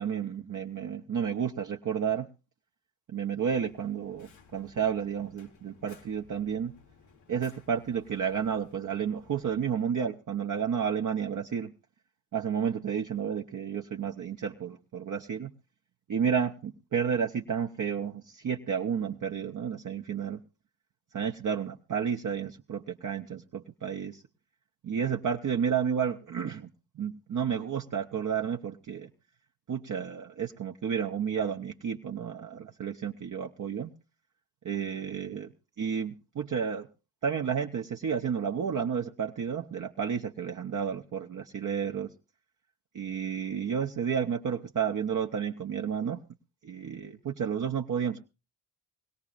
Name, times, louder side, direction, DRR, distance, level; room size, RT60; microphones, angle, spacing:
voice 1, 0.0-2.3 3.1-6.7 7.3-11.7 12.3-15.5 16.1-20.4 21.1-24.2 24.8-26.7 27.0-29.1 29.7-33.9 34.6-35.5 35.8-36.9 37.2-42.1 42.9-46.2 46.6-48.2, right 7 dB, 45° right, 2 dB, 0.7 m, -31 dB
Fire, 3.5-9.6, left 5 dB, 85° left, 1.5 m, -58 dB
21.0 x 17.0 x 2.5 m, 0.31 s
supercardioid pair, 55°, 45 cm